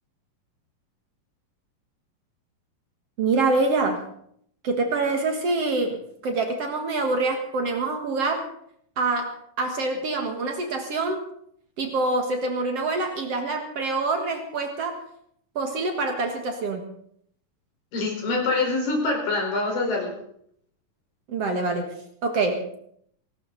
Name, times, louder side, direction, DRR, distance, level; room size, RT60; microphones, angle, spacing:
voice 1, 3.2-4.0 4.6-8.5 9.0-11.3 11.8-15.0 15.6-16.9 21.3-21.9 22.2-22.7, right 3 dB, 50° right, 4 dB, 2.3 m, -25 dB
voice 2, 17.9-20.1, left 3 dB, 80° left, 0 dB, 6.4 m, -25 dB
18.5 x 18.0 x 4.1 m, 0.67 s
omnidirectional pair, 3.9 m